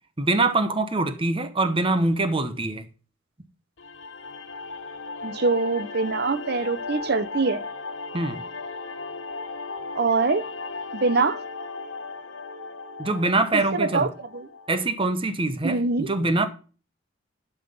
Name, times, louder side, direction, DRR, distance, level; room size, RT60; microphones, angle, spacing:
voice 1, 0.2-2.9 8.1-8.4 13.0-14.1 14.7-16.5, right 2 dB, 25° right, 1.1 m, -24 dB
sound 1, 3.8-14.8, left 3 dB, 70° left, 1.3 m, -36 dB
voice 2, 5.2-7.6 10.0-10.4 10.9-11.4 13.5-14.1 14.3-14.5 15.6-16.1, right 3 dB, 55° right, 0.8 m, -23 dB
11.5 x 5.8 x 5.7 m
head